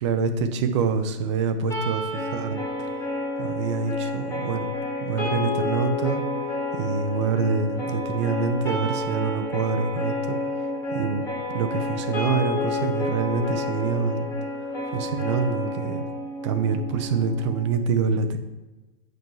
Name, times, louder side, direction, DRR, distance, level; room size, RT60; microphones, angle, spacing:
voice 1, 0.0-2.6 3.4-4.7 5.0-6.2 6.8-10.4 10.9-11.2 11.5-14.3 14.9-16.0 16.4-18.4, right 5 dB, 30° right, 7 dB, 0.6 m, -26 dB
sound 1, 1.7-17.7, left 2 dB, 10° left, 1.9 m, -30 dB
7.9 x 5.5 x 4.6 m, 1.1 s
hypercardioid pair, 165°, 30 cm